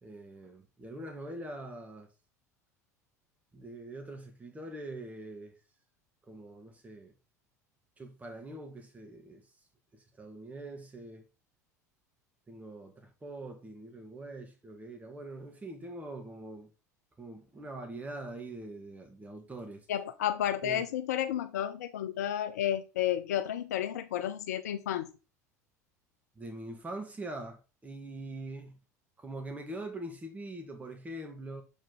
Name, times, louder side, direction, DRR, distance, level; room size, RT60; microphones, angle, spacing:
voice 1, 0.0-2.1 3.5-5.5 6.3-7.1 8.0-9.4 9.9-11.2 12.5-16.7 17.2-19.9 20.6-20.8 26.4-28.8 29.2-31.6, right 2 dB, 15° right, 1.8 m, -43 dB
voice 2, 19.9-25.1, left 11 dB, 70° left, 0.6 m, -32 dB
7.1 x 5.1 x 3.9 m
figure-of-eight pair, 70°, 9 cm